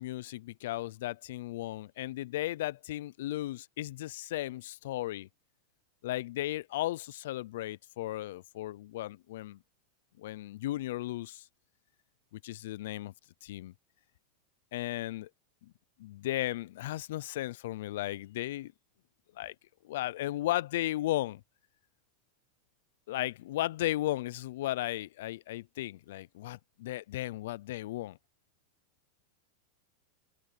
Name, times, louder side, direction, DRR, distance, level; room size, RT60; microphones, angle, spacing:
voice 1, 0.0-5.3 6.0-9.6 10.2-11.4 12.3-13.1 13.4-13.7 14.7-15.3 15.6-15.7 16.0-18.7 19.4-19.5 19.8-21.4 23.1-28.2, left 15 dB, 70° left, 0.4 m, -35 dB
supercardioid pair, 150°, 0 cm